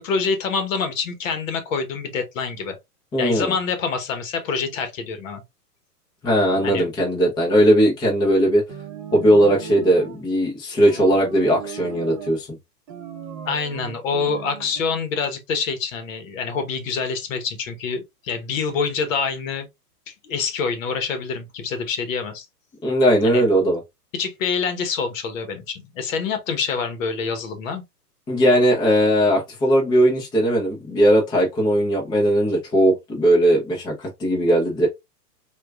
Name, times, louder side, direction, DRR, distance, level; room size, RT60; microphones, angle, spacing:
voice 1, 0.0-2.8 3.2-5.4 6.6-6.9 13.4-19.7 20.1-22.5 23.2-23.4 24.1-27.8, left 5 dB, 55° left, 1.1 m, -26 dB
voice 2, 3.1-3.5 6.2-8.6 9.1-12.6 22.8-23.8 28.3-34.9, right 1 dB, 10° left, 0.6 m, -18 dB
Rugrats synth sounds, 8.7-10.2 10.8-12.4 12.9-14.8, right 7 dB, 30° right, 0.8 m, -36 dB
4.3 x 2.4 x 2.3 m
hypercardioid pair, 130°, 48 cm